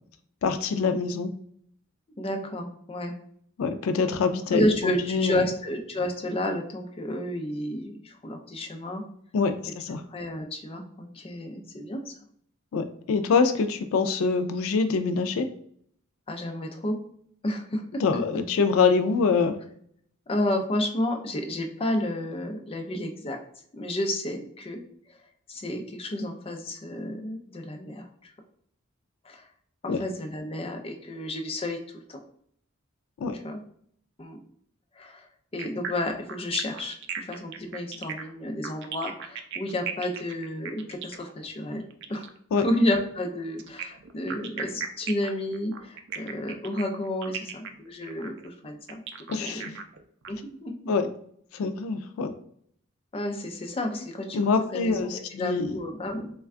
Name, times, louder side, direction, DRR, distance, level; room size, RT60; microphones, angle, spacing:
voice 1, 0.4-1.3 3.6-5.4 9.3-10.0 12.7-15.5 18.0-19.6 29.9-30.0 33.2-33.4 42.5-42.7 49.3-49.7 50.9-51.1 51.5-52.3 54.3-55.8, left 4 dB, 90° left, 9 dB, 0.4 m, -25 dB
voice 2, 2.2-3.1 4.5-9.0 10.1-12.1 16.3-17.0 17.4-18.2 20.3-23.4 23.7-24.8 25.5-28.3 29.2-29.5 29.8-32.2 33.4-33.6 34.2-34.4 35.0-35.3 35.5-41.8 42.1-42.2 42.6-49.0 49.4-49.7 50.3-50.7 53.1-54.4 54.7-56.3, left 1 dB, 30° left, 3 dB, 0.5 m, -31 dB
sound 1, 35.6-42.4 43.6-50.3, right 7 dB, 60° right, 0.4 m, -37 dB
3.3 x 2.2 x 3.5 m, 0.64 s
head